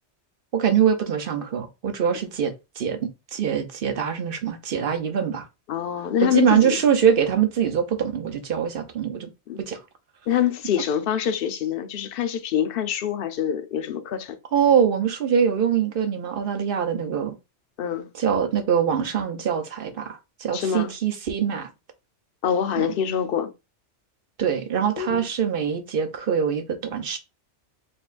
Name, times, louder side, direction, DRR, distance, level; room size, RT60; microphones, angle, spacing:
voice 1, 0.5-5.5 6.2-9.3 9.6-9.8 14.5-17.4 18.2-21.7 22.8-22.9 24.4-26.6 26.9-27.2, right 8 dB, 55° right, 0.8 m, -23 dB
voice 2, 5.7-6.8 9.5-9.6 10.3-14.4 17.8-18.1 20.5-20.9 22.4-23.5 25.0-25.3, left 9 dB, 60° left, 0.7 m, -25 dB
4.5 x 3.4 x 2.5 m
omnidirectional pair, 1.2 m